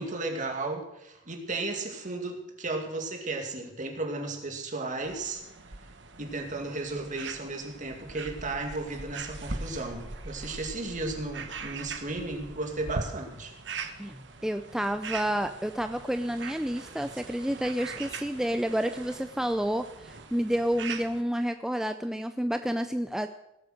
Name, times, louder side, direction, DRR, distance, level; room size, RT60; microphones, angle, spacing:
voice 1, 0.0-5.4 6.2-13.5, right 2 dB, 40° right, 2 dB, 2.3 m, -34 dB
sound 1, 5.0-21.2, right 4 dB, 65° right, 1.2 m, -41 dB
voice 2, 14.4-23.3, equal, 5° right, 8 dB, 0.4 m, -29 dB
18.0 x 8.3 x 6.5 m, 0.90 s
head